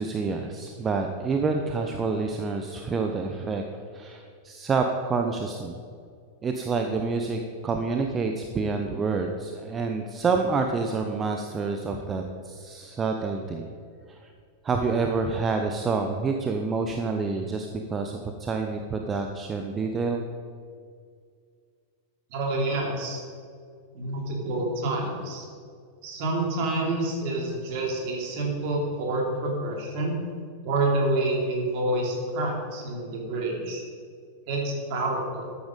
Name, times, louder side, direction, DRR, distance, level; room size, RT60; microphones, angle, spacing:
voice 1, 0.0-3.6 3.9-5.8 6.4-13.7 14.1-14.3 14.6-20.3, right 4 dB, 20° right, 4 dB, 0.9 m, -28 dB
voice 2, 22.3-23.2 23.9-25.4 26.0-30.1 30.6-33.8 34.5-35.5, right 2 dB, 45° right, 0 dB, 3.2 m, -28 dB
13.5 x 8.8 x 5.2 m, 2.2 s
figure-of-eight pair, 90°, 0 cm